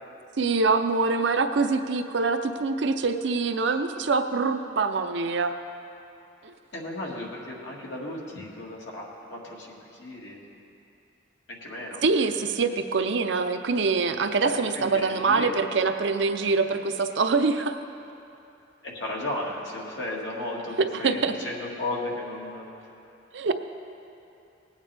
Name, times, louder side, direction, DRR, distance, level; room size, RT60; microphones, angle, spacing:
voice 1, 0.4-5.5 6.4-6.5 12.0-17.8 20.8-21.3 23.3-23.5, right 4 dB, 70° right, 7 dB, 0.6 m, -24 dB
voice 2, 6.7-10.4 11.5-12.0 14.4-15.5 18.8-22.7, left 1 dB, 75° left, -3 dB, 1.9 m, -35 dB
18.5 x 8.9 x 3.4 m, 2.7 s
head